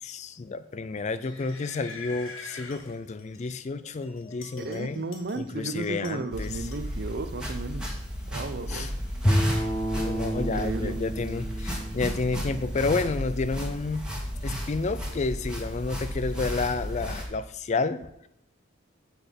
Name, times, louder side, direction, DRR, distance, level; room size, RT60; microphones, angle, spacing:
voice 1, 0.0-6.7 8.7-8.9 9.9-14.1 14.4-18.3, left 3 dB, 35° left, 13 dB, 0.4 m, -31 dB
sound 1, 1.2-3.6 4.0-5.5 5.8-7.2, left 4 dB, 75° left, 1.5 m, -45 dB
voice 2, 4.6-7.9 8.3-8.9 10.4-11.0, right 3 dB, 50° right, 10 dB, 0.6 m, -34 dB
sound 2, 6.3-17.2, equal, 5° right, 1.6 m, -34 dB
Bowed string instrument, 9.2-13.5, equal, 15° left, 0.8 m, -30 dB
7.9 x 6.0 x 5.2 m, 0.79 s
head